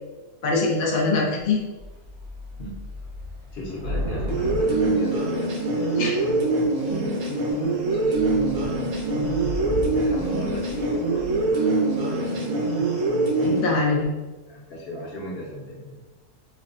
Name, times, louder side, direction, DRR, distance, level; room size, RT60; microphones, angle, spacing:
voice 1, 0.4-1.6 6.0-6.1 13.4-14.1, left 3 dB, 85° left, -1 dB, 0.4 m, -23 dB
Thunder / Rain, 1.8-5.9 6.6-7.1 7.5-7.6 7.9-11.7, left 1 dB, 50° right, 1.0 m, -35 dB
voice 2, 3.5-9.6 9.9-12.9 13.4-13.9 14.5-16.0, left 1 dB, 50° left, -3 dB, 0.9 m, -36 dB
sound 1, 4.3-13.6, right 2 dB, 75° right, 1.3 m, -24 dB
4.5 x 2.1 x 2.4 m, 1.2 s
omnidirectional pair, 1.6 m